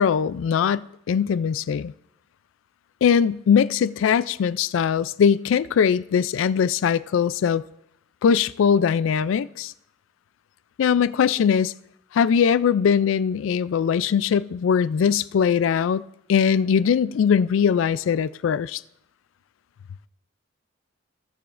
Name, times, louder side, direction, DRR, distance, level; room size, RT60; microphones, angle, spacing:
voice 1, 0.0-1.9 3.0-7.6 8.2-9.7 10.8-11.7 12.1-16.0 16.3-18.8, left 7 dB, 80° left, 0.3 m, -21 dB
16.5 x 7.0 x 2.5 m
head